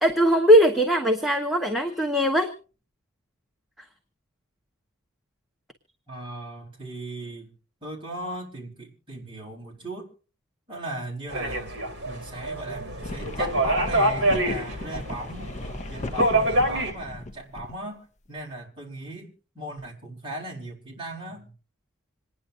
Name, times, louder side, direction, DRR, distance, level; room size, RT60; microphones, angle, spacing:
voice 1, 0.0-2.5, equal, ahead, 1.0 m, -20 dB
voice 2, 6.1-7.5 7.8-10.1 10.7-11.7 12.0-15.6 15.9-19.3 19.5-21.5, right 1 dB, 25° right, 4.1 m, -37 dB
sound 1, 11.3-16.9, right 1 dB, 55° right, 2.7 m, -26 dB
sound 2, 13.0-17.8, left 2 dB, 35° left, 0.7 m, -36 dB
27.0 x 10.0 x 2.6 m
head